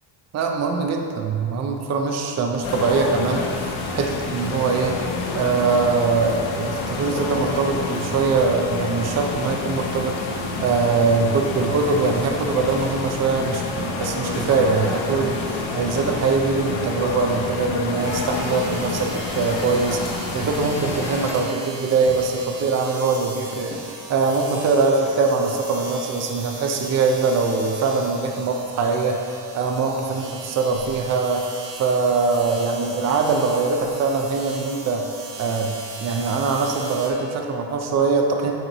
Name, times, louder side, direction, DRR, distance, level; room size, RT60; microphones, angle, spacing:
voice 1, 0.3-5.0 5.3-31.5 31.8-35.1 35.4-35.7 36.0-38.5, right 4 dB, 35° right, 2 dB, 0.5 m, -22 dB
sound 1, 2.6-21.3, left 3 dB, 75° left, 1.0 m, -28 dB
sound 2, 18.0-37.1, right 3 dB, 65° right, 1.1 m, -38 dB
sound 3, 20.0-21.5 22.0-23.9 24.2-24.6 24.9-25.5, left 2 dB, 15° left, 0.9 m, -43 dB
9.2 x 3.1 x 3.9 m, 2.5 s
cardioid pair, 145°, 47 cm